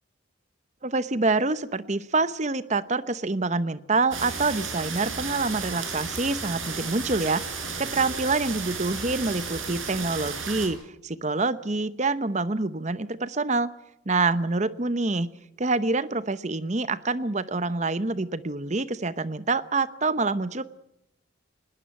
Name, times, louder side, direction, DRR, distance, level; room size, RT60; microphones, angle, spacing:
voice 1, 0.8-10.8 11.0-13.7 14.1-15.3 15.6-20.7, right 3 dB, 35° right, 15 dB, 0.9 m, -26 dB
sound 1, 4.1-10.7, right 5 dB, 75° right, 5.5 m, -33 dB
20.0 x 19.0 x 9.0 m, 0.83 s
head